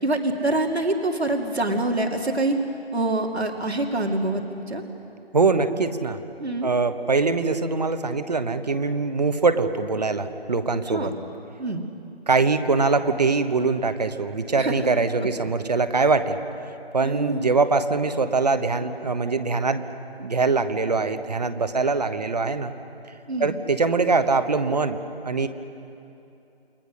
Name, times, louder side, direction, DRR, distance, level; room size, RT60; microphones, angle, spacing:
voice 1, 0.0-2.6 2.9-4.8 6.4-6.7 10.9-11.1 11.6-11.8 14.6-14.9 17.0-17.5 23.3-23.5, right 2 dB, 80° right, 3 dB, 2.6 m, -25 dB
voice 2, 5.3-6.2 6.6-11.1 12.3-16.4 16.9-19.8 20.2-22.7 23.4-25.0 25.2-25.5, right 4 dB, 40° right, 9 dB, 1.2 m, -23 dB
29.0 x 23.0 x 6.3 m, 2.7 s
figure-of-eight pair, 160°, 31 cm